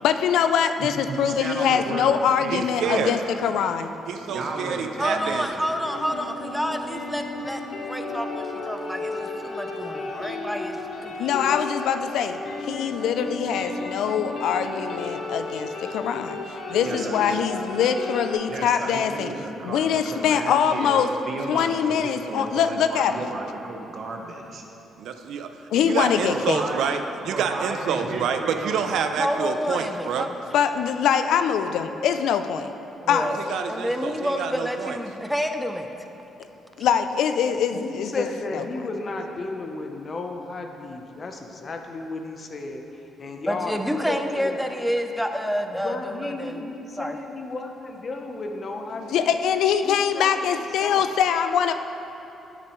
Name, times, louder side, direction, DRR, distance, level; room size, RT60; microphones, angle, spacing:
voice 1, 0.0-3.9 11.2-16.4 16.7-19.3 19.6-21.1 21.5-23.1 25.7-26.6 30.5-32.7 33.1-33.4 36.8-38.3 49.1-51.7, left 8 dB, 80° left, 9 dB, 0.3 m, -23 dB
voice 2, 0.8-3.7 4.2-6.0 16.8-17.4 18.5-24.6 26.3-26.9 27.3-28.8, right 2 dB, 55° right, 1 dB, 0.9 m, -34 dB
voice 3, 2.5-3.1 4.1-5.7 25.0-30.3 33.2-35.0, right 6 dB, 80° right, 7 dB, 0.4 m, -28 dB
voice 4, 5.0-11.7 16.7-16.8 29.2-30.3 33.0-35.9 43.5-46.6 47.0-47.2, equal, ahead, 5 dB, 0.5 m, -29 dB
sound 1, 5.8-18.3, left 2 dB, 60° left, 1.1 m, -33 dB
voice 5, 37.4-44.7 45.6-49.3 49.8-51.0, left 3 dB, 40° left, 4 dB, 0.7 m, -34 dB
9.1 x 6.7 x 3.1 m, 3.0 s
cardioid pair, 90°, 0 cm